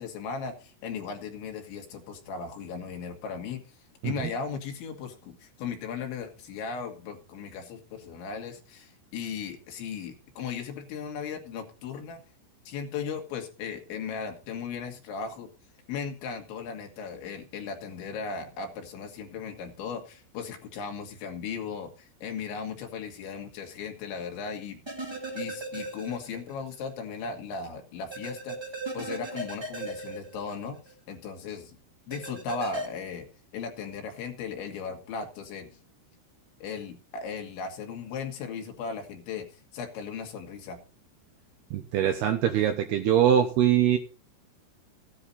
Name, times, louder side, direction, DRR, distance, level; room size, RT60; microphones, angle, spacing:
voice 1, 0.0-3.6 4.0-12.2 12.7-15.5 15.9-24.8 25.3-28.6 28.9-31.8 32.1-33.3 33.5-35.7 36.6-39.5 39.7-40.8, left 5 dB, 70° left, 4 dB, 4.2 m, -37 dB
sound 1, 24.9-26.5 26.9-27.0 28.1-30.9 32.1-32.9, right 2 dB, 15° right, 0.9 m, -37 dB
voice 2, 41.7-44.0, right 10 dB, 75° right, 6 dB, 2.5 m, -23 dB
15.5 x 10.0 x 4.2 m, 0.35 s
omnidirectional pair, 5.6 m